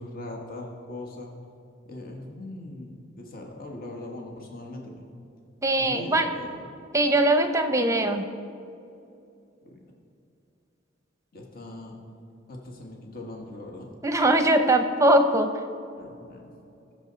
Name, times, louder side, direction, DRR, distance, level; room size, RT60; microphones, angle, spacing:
voice 1, 0.0-1.3 1.9-5.1 5.8-6.7 9.6-9.8 11.3-12.0 12.5-13.9 16.0-16.5, left 1 dB, 50° left, 0 dB, 1.4 m, -40 dB
voice 2, 5.6-6.3 6.9-8.3 14.0-15.5, right 1 dB, 15° right, 7 dB, 0.7 m, -21 dB
20.0 x 6.7 x 4.0 m, 2.6 s
head